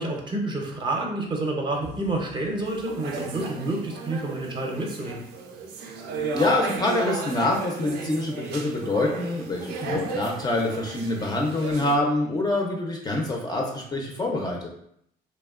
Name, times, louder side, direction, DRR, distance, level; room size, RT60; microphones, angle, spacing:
voice 1, 0.0-5.3 9.8-10.1, right 2 dB, 25° right, 0 dB, 0.6 m, -29 dB
sound 1, 1.8-3.6, left 2 dB, 85° left, 0.5 m, -47 dB
sound 2, 2.7-12.0, right 4 dB, 75° right, 0.4 m, -34 dB
voice 2, 6.3-14.7, left 2 dB, 25° left, 0 dB, 0.4 m, -26 dB
2.9 x 2.1 x 2.3 m, 0.72 s
cardioid pair, 110°, 17 cm